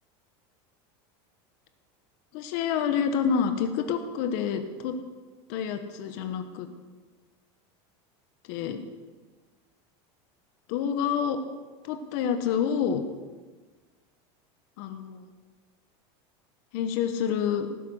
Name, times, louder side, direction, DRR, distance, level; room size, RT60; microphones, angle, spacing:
voice 1, 2.3-5.0 5.5-6.7 8.5-8.8 10.7-11.4 11.8-13.0 14.8-15.3 16.7-17.7, left 7 dB, 50° left, 8 dB, 1.2 m, -28 dB
16.5 x 9.9 x 6.5 m, 1.3 s
supercardioid pair, 175°, 14 cm